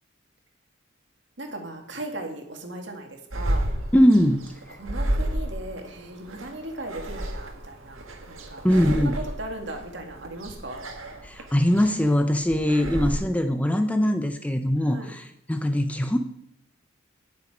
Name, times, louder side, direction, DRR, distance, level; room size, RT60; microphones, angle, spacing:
voice 1, 1.4-3.7 4.8-8.7 8.9-10.8 13.0-13.2 14.8-15.1, right 1 dB, 60° right, 3 dB, 2.2 m, -37 dB
sound 1, 3.3-13.1, right 1 dB, 90° right, 1.9 m, -32 dB
voice 2, 3.9-4.4 8.6-9.2 11.2-16.2, equal, 5° left, 7 dB, 0.5 m, -21 dB
18.5 x 7.0 x 5.0 m, 0.77 s
head